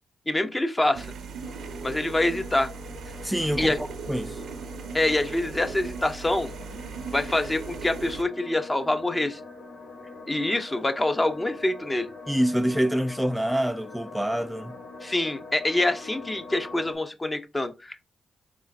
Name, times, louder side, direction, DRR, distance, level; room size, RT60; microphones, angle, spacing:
voice 1, 0.3-1.1 1.8-2.7 3.6-3.8 4.9-6.5 7.1-9.4 10.3-12.1 15.0-18.1, left 2 dB, 20° left, 0.8 m, -26 dB
sound 1, 0.9-8.2, right 5 dB, 75° right, 0.6 m, -38 dB
sound 2, 1.4-17.0, left 3 dB, 80° left, 1.3 m, -43 dB
voice 2, 3.2-4.4 12.3-14.8, equal, 5° right, 0.5 m, -26 dB
4.1 x 3.6 x 2.6 m
supercardioid pair, 55°, 0 cm